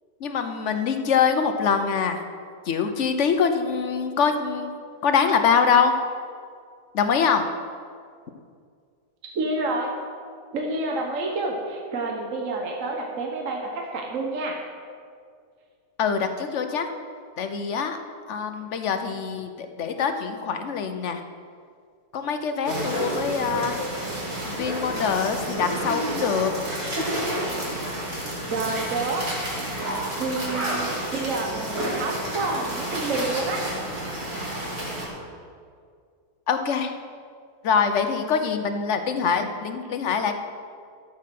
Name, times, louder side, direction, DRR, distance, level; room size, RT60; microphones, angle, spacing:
voice 1, 0.2-2.2 2.7-4.7 5.0-5.9 6.9-7.5 16.0-16.9 17.4-18.0 18.3-21.2 22.1-23.8 24.4-26.5 36.5-36.9 37.6-40.3, left 6 dB, 55° left, 7 dB, 1.0 m, -24 dB
voice 2, 9.3-10.0 10.5-14.5 28.5-29.2 29.5-29.6 30.2-33.6, right 2 dB, 55° right, 0 dB, 1.4 m, -28 dB
sound 1, 22.7-35.1, right 1 dB, 40° right, 2.7 m, -30 dB
13.5 x 7.5 x 5.9 m, 2.2 s
omnidirectional pair, 1.7 m